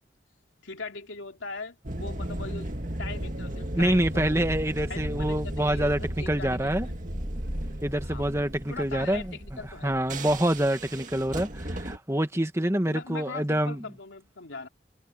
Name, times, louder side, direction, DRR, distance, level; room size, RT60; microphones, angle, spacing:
voice 1, 0.6-2.7 3.0-4.4 4.9-7.0 8.0-8.3 8.7-9.9 12.9-14.7, left 3 dB, 90° left, 3.2 m, -40 dB
sound 1, 1.8-12.0, right 1 dB, 40° right, 2.2 m, -35 dB
voice 2, 3.7-6.9 7.8-9.2 9.8-13.8, right 1 dB, 15° right, 1.5 m, -26 dB
head